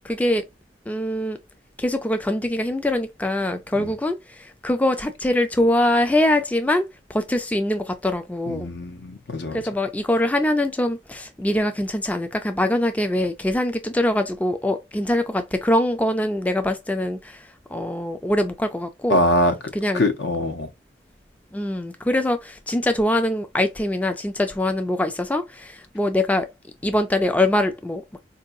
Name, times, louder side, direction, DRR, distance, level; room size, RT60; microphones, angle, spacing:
voice 1, 0.0-0.4 0.9-1.4 1.8-8.7 9.5-19.2 19.7-20.0 21.5-26.5 26.8-28.0, left 1 dB, 10° left, 0.3 m, -23 dB
voice 2, 8.5-9.6 19.1-19.5 19.9-20.7, left 1 dB, 75° left, 0.7 m, -22 dB
4.5 x 2.7 x 2.5 m
head